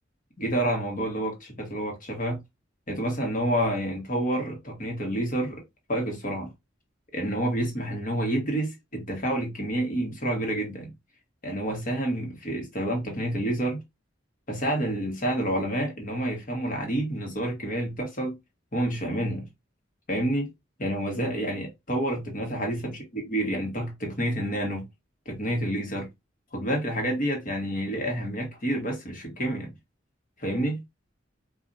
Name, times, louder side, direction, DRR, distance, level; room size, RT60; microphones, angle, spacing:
voice 1, 0.4-2.4 2.9-5.6 5.9-6.5 7.1-10.9 11.4-13.8 14.5-18.3 18.7-19.5 20.1-20.5 20.8-24.8 25.2-26.1 26.5-29.7 30.4-30.8, right 1 dB, 45° left, 1.4 m, -29 dB
4.6 x 2.5 x 2.7 m
head